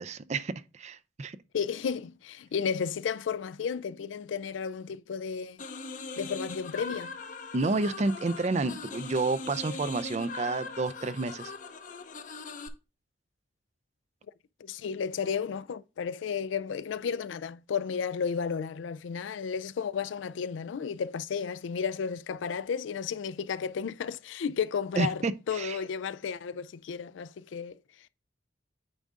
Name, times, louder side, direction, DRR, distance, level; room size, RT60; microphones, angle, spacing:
voice 1, 0.0-1.4 7.5-11.5 25.0-25.8, right 3 dB, 35° right, 0.4 m, -30 dB
voice 2, 1.5-5.6 6.2-7.1 14.6-27.8, left 6 dB, 85° left, 0.4 m, -33 dB
sound 1, 5.6-12.7, left 3 dB, 45° left, 0.6 m, -41 dB
9.0 x 3.7 x 3.6 m
head